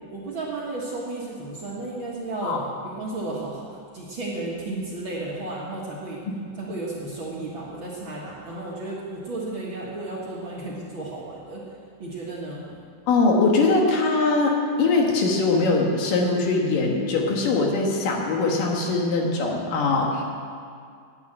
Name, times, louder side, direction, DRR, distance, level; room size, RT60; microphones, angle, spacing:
voice 1, 0.1-2.6 2.8-3.7 3.9-6.2 6.6-11.6 12.0-12.6, right 2 dB, 50° right, -5 dB, 1.8 m, -33 dB
voice 2, 13.1-20.2, left 3 dB, 80° left, 0 dB, 3.2 m, -22 dB
9.8 x 9.4 x 8.7 m, 2.3 s
omnidirectional pair, 3.8 m